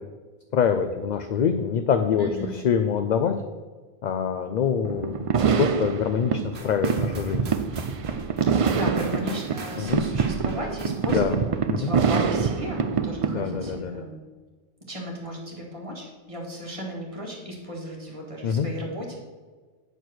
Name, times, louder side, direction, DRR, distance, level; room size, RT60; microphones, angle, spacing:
voice 1, 0.5-3.3 4.0-7.4 9.0-9.2 9.8-10.0 11.1-11.4 11.7-11.9 13.3-14.1 18.4-18.7, left 7 dB, 55° left, 8 dB, 0.5 m, -25 dB
voice 2, 2.2-2.5 8.4-11.4 11.8-14.2 14.9-19.2, equal, 30° right, -2 dB, 2.0 m, -35 dB
sound 1, 4.8-13.8, right 6 dB, 55° right, 0.4 m, -25 dB
sound 2, 6.5-11.7, right 2 dB, 85° right, 1.3 m, -39 dB
8.9 x 4.5 x 6.3 m, 1.4 s
omnidirectional pair, 1.1 m